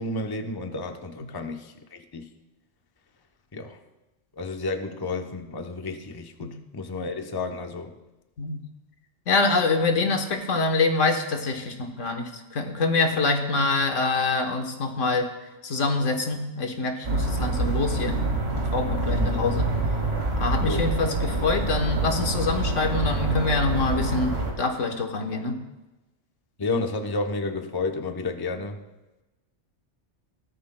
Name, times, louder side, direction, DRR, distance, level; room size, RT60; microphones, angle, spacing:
voice 1, 0.0-2.2 3.5-3.8 4.4-7.9 19.1-19.4 20.6-20.9 26.6-28.8, left 3 dB, 25° left, 5 dB, 0.7 m, -31 dB
voice 2, 9.3-15.3 15.6-18.2 18.7-19.7 20.4-25.6, left 3 dB, 90° left, 5 dB, 1.5 m, -25 dB
sound 1, 17.0-24.5, right 2 dB, 85° right, 2.2 m, -26 dB
17.0 x 13.5 x 2.2 m, 1.1 s
omnidirectional pair, 1.2 m